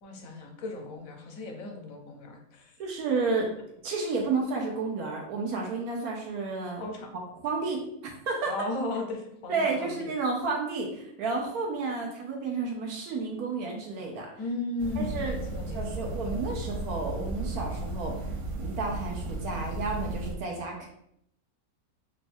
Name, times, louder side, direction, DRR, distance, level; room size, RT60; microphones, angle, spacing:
voice 1, 0.0-2.7 6.8-7.1 8.5-10.1 14.4-16.1, left 2 dB, 70° left, 2 dB, 1.1 m, -36 dB
voice 2, 2.8-3.5 3.8-6.9 7.4-8.5 9.5-14.3 15.0-15.4 15.7-18.2 18.6-20.9, right 4 dB, 85° right, 0 dB, 1.2 m, -31 dB
sound 1, 14.8-20.3, right 2 dB, 65° right, 0.9 m, -34 dB
3.2 x 2.3 x 4.3 m, 0.74 s
omnidirectional pair, 1.5 m